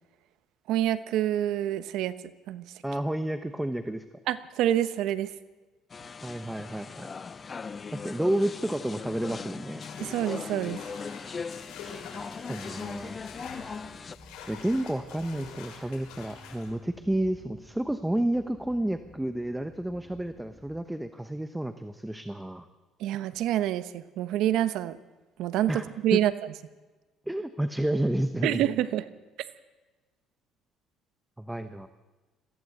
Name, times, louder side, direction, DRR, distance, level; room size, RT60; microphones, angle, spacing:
voice 1, 0.7-2.1 2.5-2.6 4.3-5.3 10.0-10.8 23.0-25.0 25.4-26.3 28.4-29.0, right 12 dB, 75° right, 13 dB, 1.1 m, -27 dB
voice 2, 2.8-4.0 6.2-7.1 7.9-9.8 12.5-13.2 14.5-22.7 25.7-25.8 26.1-26.2 27.3-28.6 31.4-31.9, right 1 dB, 5° right, 10 dB, 1.0 m, -30 dB
sound 1, 5.9-14.2, left 5 dB, 30° left, 0.6 m, -39 dB
sound 2, 9.8-16.7, left 6 dB, 80° left, 6.6 m, -46 dB
sound 3, 12.8-20.8, left 1 dB, 10° left, 7.2 m, -54 dB
22.5 x 15.0 x 8.0 m, 1.2 s
cardioid pair, 120°, 0 cm